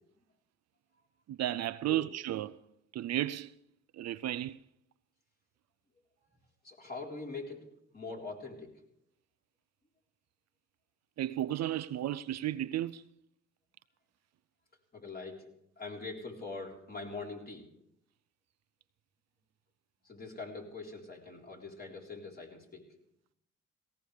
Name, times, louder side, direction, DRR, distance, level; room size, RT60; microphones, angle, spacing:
voice 1, 1.3-2.6 2.9-3.5 3.9-4.6 11.2-13.1, right 13 dB, 60° right, 0.5 m, -33 dB
voice 2, 6.6-7.6 7.9-8.7 14.9-15.5 15.8-17.6 20.1-22.8, left 3 dB, 30° left, 3.8 m, -43 dB
18.5 x 17.0 x 3.4 m
cardioid pair, 90°, 30 cm